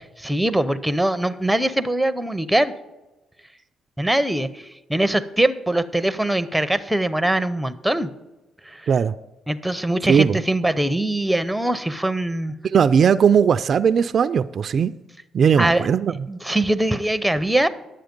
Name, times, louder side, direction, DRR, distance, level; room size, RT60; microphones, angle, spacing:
voice 1, 0.2-2.7 4.0-8.1 8.6-8.9 9.5-12.5 15.6-15.8 16.3-17.7, right 1 dB, 5° right, 11 dB, 0.6 m, -22 dB
voice 2, 10.1-10.4 12.6-14.9 15.3-16.1, right 7 dB, 55° right, 12 dB, 0.3 m, -18 dB
10.5 x 7.6 x 5.2 m, 1.0 s
cardioid pair, 90°, 0 cm